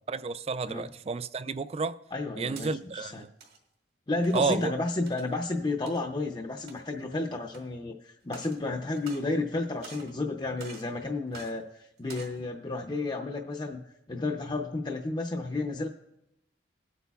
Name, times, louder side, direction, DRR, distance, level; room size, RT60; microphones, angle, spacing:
voice 1, 0.1-2.0 2.4-3.3 4.3-4.7, right 4 dB, 35° right, 0.3 m, -31 dB
voice 2, 2.1-3.2 4.1-13.8 14.1-15.9, left 2 dB, 25° left, 0.6 m, -32 dB
sound 1, 2.3-2.7 3.2-3.6 4.2-4.5 5.1-5.3 5.9-6.0 6.6-7.0 7.5-7.6 8.2-8.6 8.9-9.5 9.8-10.2 10.6-10.9 11.3-11.5 12.0-12.4, right 4 dB, 55° right, 1.9 m, -47 dB
21.0 x 8.2 x 2.3 m
head